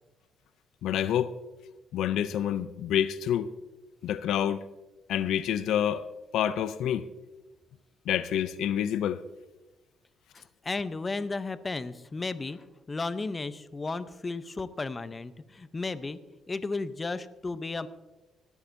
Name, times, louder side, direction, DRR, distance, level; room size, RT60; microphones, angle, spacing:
voice 1, 0.8-1.3 1.9-3.5 4.0-4.6 5.1-6.1 6.3-7.1 8.1-9.2, left 10 dB, 80° left, 0.4 m, -27 dB
voice 2, 10.3-16.2 16.5-17.9, left 3 dB, 25° left, 0.7 m, -34 dB
18.5 x 12.0 x 2.7 m
cardioid pair, 90°, 0 cm